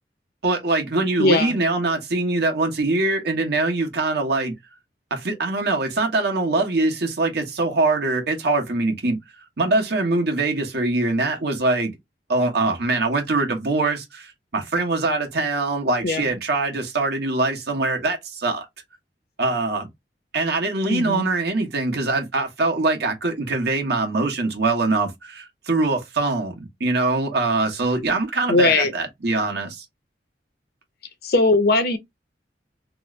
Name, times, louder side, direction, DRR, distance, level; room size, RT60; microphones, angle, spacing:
voice 1, 0.4-4.5 5.1-9.2 9.6-11.9 12.3-18.6 19.4-19.9 20.3-29.8, right 3 dB, 65° right, 1.0 m, -23 dB
voice 2, 1.2-1.5 16.0-16.2 20.9-21.3 28.5-28.9 31.2-32.0, left 2 dB, 60° left, 0.7 m, -19 dB
3.0 x 2.4 x 3.0 m
head